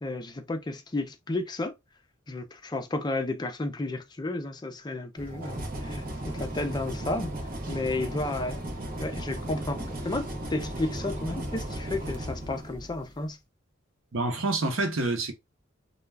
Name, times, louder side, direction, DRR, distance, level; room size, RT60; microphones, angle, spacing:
voice 1, 0.0-1.8 2.3-8.6 9.0-13.4, left 2 dB, 20° left, 0.4 m, -32 dB
sound 1, 5.2-13.1, right 1 dB, 45° right, 0.7 m, -36 dB
voice 2, 14.1-15.3, right 2 dB, 80° right, 0.8 m, -27 dB
2.2 x 2.2 x 3.3 m
head